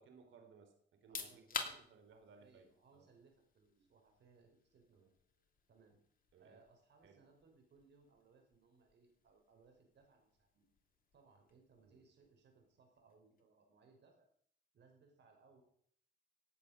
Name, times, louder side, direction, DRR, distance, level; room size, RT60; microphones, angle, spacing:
voice 1, 0.0-3.1 4.9-5.1 6.3-6.6 7.0-7.2 11.8-12.0, right 5 dB, 75° right, 6 dB, 3.6 m, -63 dB
sound 1, 0.9-13.5, left 5 dB, 45° left, 2.8 m, -52 dB
voice 2, 1.1-1.6 2.1-5.1 5.7-6.0 6.4-10.7 11.1-14.3 14.7-15.6, right 4 dB, 60° right, 3 dB, 5.6 m, -68 dB
17.5 x 8.5 x 6.8 m, 0.64 s
cardioid pair, 90°, 20 cm